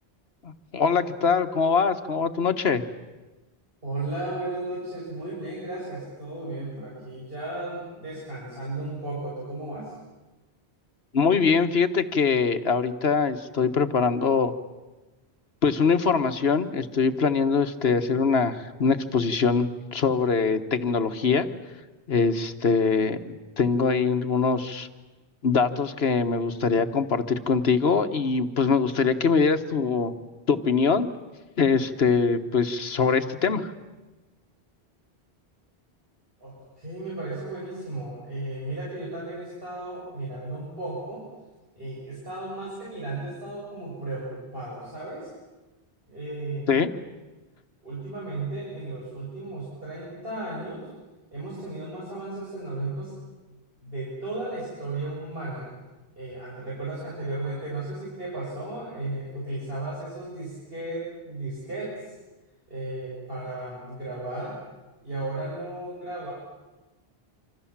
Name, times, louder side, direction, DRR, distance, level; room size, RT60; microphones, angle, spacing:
voice 1, 0.4-2.8 11.1-14.5 15.6-21.5 22.1-24.9 25.4-30.1 30.5-31.1 31.6-33.7 46.7-46.9, left 5 dB, 70° left, 10 dB, 1.5 m, -23 dB
voice 2, 3.8-9.9 36.4-41.3 41.8-45.3 46.1-46.7 47.8-50.9 51.3-53.2 53.8-55.7 56.2-62.1 62.7-64.6 65.0-66.3, right 2 dB, 60° right, -5 dB, 7.0 m, -34 dB
27.0 x 26.0 x 7.4 m, 1.2 s
omnidirectional pair, 1.1 m